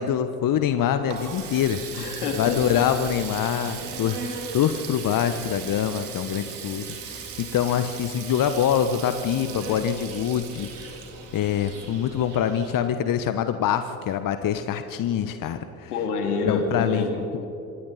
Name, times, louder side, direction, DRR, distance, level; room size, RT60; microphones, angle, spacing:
voice 1, 0.0-1.8 2.3-11.0 11.3-15.9 16.5-17.0, left 9 dB, 45° left, 10 dB, 1.1 m, -25 dB
Water tap faucet, 0.6-12.3, right 7 dB, 80° right, 3.0 m, -39 dB
voice 2, 1.9-2.9 15.9-17.5, left 4 dB, 80° left, 4 dB, 2.6 m, -27 dB
Insect, 3.1-12.9, right 3 dB, 65° right, 5.4 m, -42 dB
26.5 x 25.0 x 4.2 m, 2.9 s
figure-of-eight pair, 50°, 45 cm